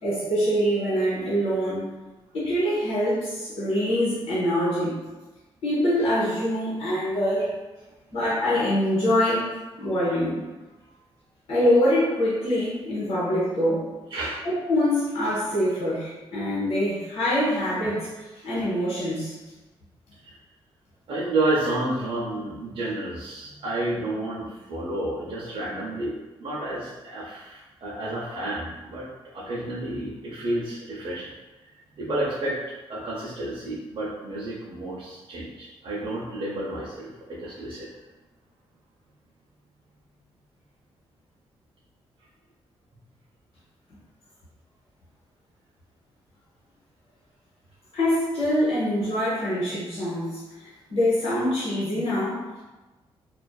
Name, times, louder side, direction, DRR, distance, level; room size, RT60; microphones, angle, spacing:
voice 1, 0.0-1.9 2.3-5.0 5.6-7.5 8.1-9.5 9.8-10.4 11.5-13.9 14.7-19.3 47.9-52.4, equal, 85° left, -10 dB, 0.9 m, -24 dB
voice 2, 21.1-31.3 32.0-32.6 32.9-37.9, right 2 dB, 60° right, -7 dB, 0.5 m, -30 dB
2.4 x 2.3 x 2.2 m, 1.1 s
cardioid pair, 105°, 10 cm